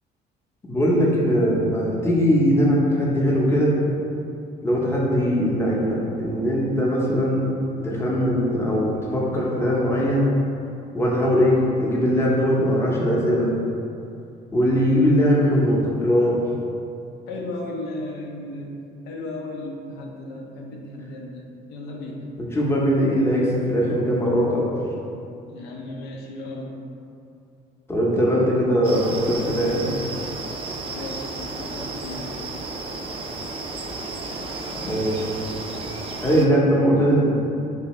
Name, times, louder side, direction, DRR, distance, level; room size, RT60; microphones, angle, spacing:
voice 1, 0.7-3.7 4.6-7.5 7.8-10.3 10.9-13.5 14.5-16.4 22.4-24.7 27.9-29.9 34.8-35.3 36.2-37.4, equal, 15° left, -4 dB, 0.6 m, -20 dB
voice 2, 17.3-22.3 25.5-26.8 30.9-32.3, left 2 dB, 90° left, 0 dB, 0.5 m, -35 dB
sound 1, 28.8-36.5, right 3 dB, 35° right, 0.3 m, -33 dB
3.3 x 2.7 x 3.0 m, 2.6 s
cardioid pair, 110°, 17 cm